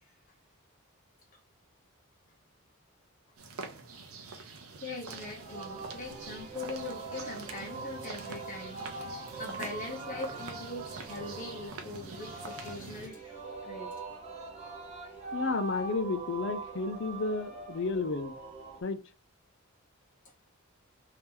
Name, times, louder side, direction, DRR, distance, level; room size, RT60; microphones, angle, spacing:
sound 1, 3.4-13.1, right 4 dB, 80° right, 0.7 m, -45 dB
voice 1, 4.8-13.9, left 2 dB, 35° left, 0.9 m, -42 dB
Singing, 5.1-18.8, right 3 dB, 30° right, 0.9 m, -42 dB
voice 2, 15.3-18.3 18.8-19.0, left 3 dB, 55° left, 0.5 m, -32 dB
2.8 x 2.8 x 3.6 m
head